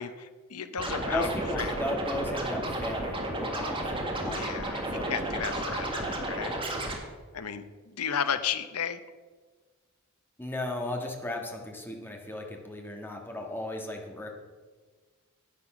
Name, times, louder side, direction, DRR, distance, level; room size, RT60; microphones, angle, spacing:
voice 1, 0.0-1.3 1.6-1.9 4.2-6.6 7.3-9.0, left 7 dB, 80° left, 12 dB, 0.8 m, -34 dB
Scratching (performance technique), 0.8-7.0, right 1 dB, 25° right, 1.7 m, -32 dB
voice 2, 1.1-5.6 10.4-14.3, left 1 dB, 10° left, 2 dB, 1.6 m, -36 dB
10.0 x 9.2 x 6.0 m, 1.4 s
head